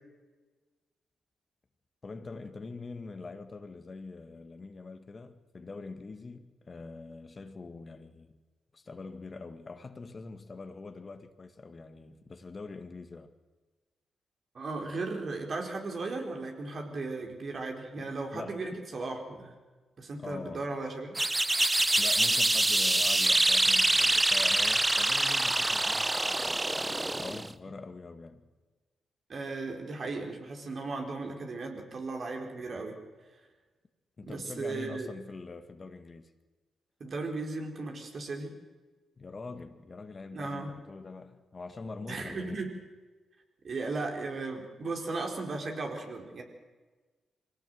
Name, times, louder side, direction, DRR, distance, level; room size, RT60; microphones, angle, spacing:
voice 1, 2.0-8.4 8.7-13.3 18.0-18.6 20.2-20.7 22.0-26.6 27.2-28.5 34.2-36.3 39.2-42.6, left 3 dB, 40° left, 2.0 m, -44 dB
voice 2, 14.5-19.5 20.0-21.2 29.3-33.0 34.3-35.1 37.0-38.5 40.3-40.7 42.1-42.7 43.6-46.4, right 3 dB, 55° right, 4.3 m, -36 dB
sound 1, 21.2-27.5, right 2 dB, 20° right, 0.9 m, -25 dB
23.5 x 17.5 x 7.9 m
hypercardioid pair, 45°, 0 cm